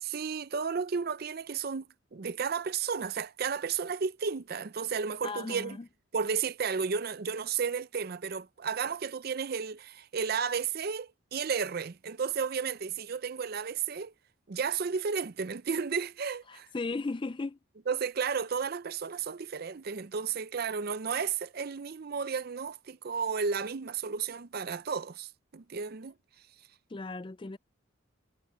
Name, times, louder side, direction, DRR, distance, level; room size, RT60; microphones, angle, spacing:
voice 1, 0.0-1.9 2.1-5.8 6.1-14.1 14.5-16.7 17.9-26.1, right 6 dB, 45° right, 0.5 m, -33 dB
voice 2, 5.2-5.9 16.5-17.6 26.9-27.6, left 3 dB, 25° left, 0.4 m, -36 dB
head